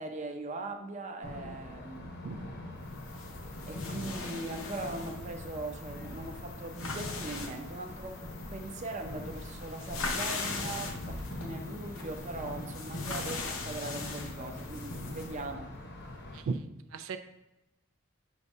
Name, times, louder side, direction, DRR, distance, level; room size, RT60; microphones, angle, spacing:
voice 1, 0.0-2.2 3.7-8.2 8.5-15.7, right 2 dB, 35° right, 4 dB, 0.6 m, -40 dB
sound 1, 1.2-16.4, left 1 dB, 50° left, 0.9 m, -42 dB
voice 2, 2.2-2.4 16.3-16.6 16.9-17.2, right 4 dB, 80° right, 8 dB, 0.4 m, -34 dB
sound 2, 2.9-15.4, left 3 dB, 80° left, 0.8 m, -41 dB
sound 3, 10.4-16.0, right 6 dB, 15° left, 0.7 m, -57 dB
7.0 x 2.6 x 5.3 m, 0.96 s
head